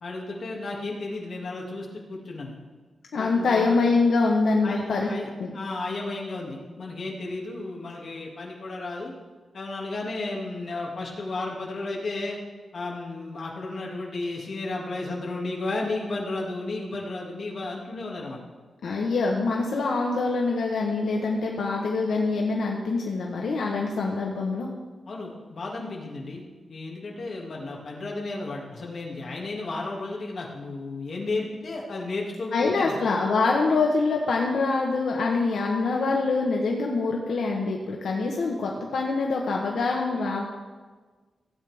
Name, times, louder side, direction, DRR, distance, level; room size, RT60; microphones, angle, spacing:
voice 1, 0.0-2.6 3.2-3.8 4.6-9.1 9.5-12.4 12.7-18.4 25.1-26.4 26.7-33.0, left 2 dB, 50° left, -2 dB, 2.2 m, -33 dB
voice 2, 3.1-5.1 5.4-5.6 18.8-24.7 32.5-40.4, left 3 dB, 80° left, -1 dB, 1.2 m, -25 dB
16.5 x 8.7 x 3.5 m, 1.4 s
wide cardioid pair, 150°, 0 cm